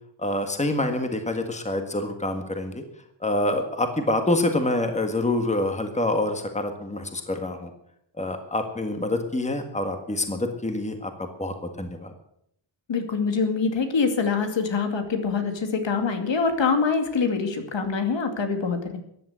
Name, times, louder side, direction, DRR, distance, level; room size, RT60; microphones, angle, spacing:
voice 1, 0.2-2.8 3.2-7.7 8.2-12.1, left 1 dB, 15° left, 6 dB, 1.7 m, -26 dB
voice 2, 12.9-19.0, left 5 dB, 70° left, 6 dB, 2.4 m, -25 dB
14.5 x 10.5 x 8.1 m, 0.74 s
wide cardioid pair, 160°, 45 cm